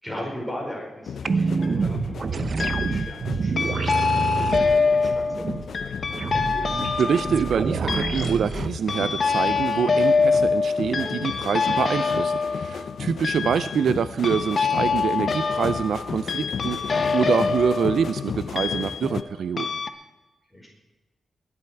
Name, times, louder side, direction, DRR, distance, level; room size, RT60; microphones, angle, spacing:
voice 1, 0.0-3.6 4.1-6.4 11.7-11.9 20.5-20.7, equal, 5° left, -2 dB, 4.9 m, -38 dB
sound 1, 1.1-19.2, left 7 dB, 70° left, 0.6 m, -35 dB
sound 2, 1.2-8.7, right 4 dB, 50° right, 0.7 m, -27 dB
sound 3, 1.3-1.8 2.6-3.2 3.6-19.3 19.6-19.9, left 4 dB, 50° left, 1.1 m, -25 dB
voice 2, 6.8-19.7, right 7 dB, 75° right, 14 dB, 0.4 m, -25 dB
21.0 x 11.0 x 4.5 m, 1.1 s
wide cardioid pair, 125°, 0 cm